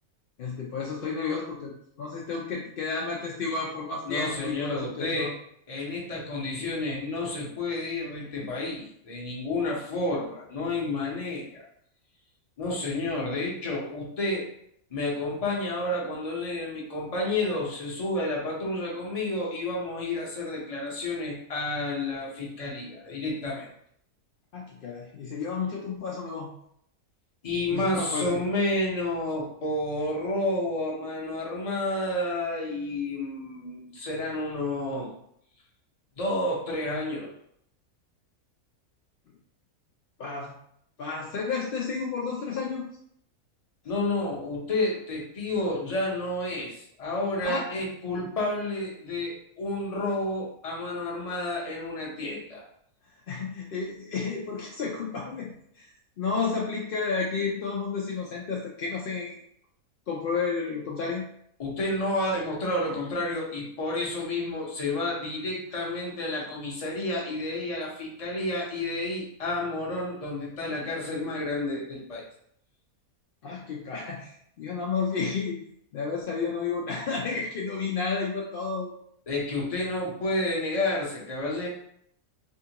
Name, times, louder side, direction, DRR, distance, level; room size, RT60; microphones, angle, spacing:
voice 1, 0.4-1.7 2.0-5.3 24.5-26.5 27.7-28.4 40.2-40.5 41.0-42.9 47.4-47.7 53.3-59.4 60.1-61.2 73.4-75.6 75.9-78.9, left 5 dB, 75° left, -2 dB, 0.5 m, -31 dB
voice 2, 4.0-5.3 5.7-11.7 12.6-14.4 14.9-23.7 27.4-35.1 36.2-37.3 43.8-52.6 61.6-72.2 79.3-81.7, left 2 dB, 35° left, -3 dB, 0.7 m, -30 dB
3.6 x 2.4 x 2.8 m, 0.70 s
omnidirectional pair, 1.5 m